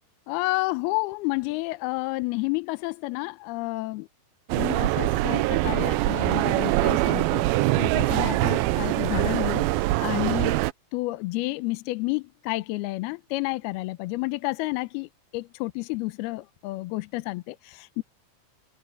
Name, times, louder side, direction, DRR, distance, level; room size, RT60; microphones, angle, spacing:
voice 1, 0.3-4.1 4.5-7.5 7.8-9.7 10.0-10.6 10.9-18.0, left 22 dB, 80° left, 2.5 m, -30 dB
sound 1, 4.5-10.7, right 18 dB, 80° right, 2.1 m, -23 dB
omnidirectional pair, 4.8 m